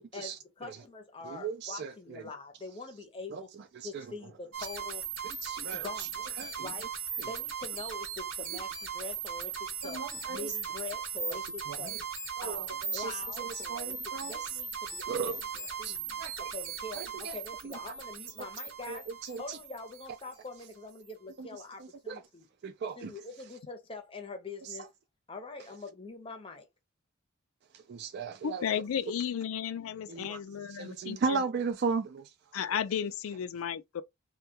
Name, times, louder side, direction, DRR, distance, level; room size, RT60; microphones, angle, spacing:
voice 1, 0.0-3.5 3.8-5.0 5.7-6.3 6.6-6.9 7.3-12.0 12.4-15.4 15.8-16.1 16.4-22.5 23.0-24.9 25.3-26.7, left 3 dB, 25° left, 0.6 m, -44 dB
voice 2, 1.2-2.2 3.3-3.4 3.8-4.1 5.4-5.9 6.4-6.7 7.2-7.3 9.8-10.5 11.7-11.8 12.4-12.7 12.9-14.4 15.1-15.4 15.8-16.3 16.9-17.3 17.6-17.7 18.9-19.6 21.4-21.5 22.1-22.2 22.6-23.1 27.9-28.6 30.1-30.4 30.8-32.3, right 5 dB, 50° right, 0.3 m, -36 dB
sound 1, 4.5-20.4, right 6 dB, 70° right, 0.8 m, -38 dB
voice 3, 28.4-31.4 32.5-34.0, left 8 dB, 80° left, 0.4 m, -34 dB
2.2 x 2.2 x 2.8 m
head